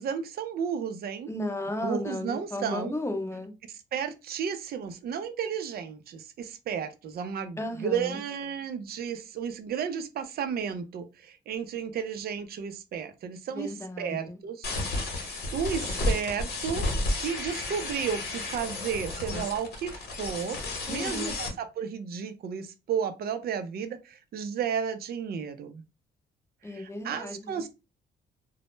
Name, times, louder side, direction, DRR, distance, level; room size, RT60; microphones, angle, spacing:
voice 1, 0.0-1.3 1.8-2.9 3.9-13.7 14.0-14.7 15.1-16.9 17.2-20.6 20.9-25.8 26.7-27.7, right 7 dB, 50° right, 0.4 m, -33 dB
voice 2, 1.3-3.5 7.6-8.2 13.5-14.4 20.9-21.3 26.6-27.6, left 1 dB, 15° left, 0.6 m, -34 dB
sound 1, 14.6-21.5, left 2 dB, 55° left, 1.0 m, -32 dB
2.0 x 2.0 x 3.0 m
cardioid pair, 90°, 20 cm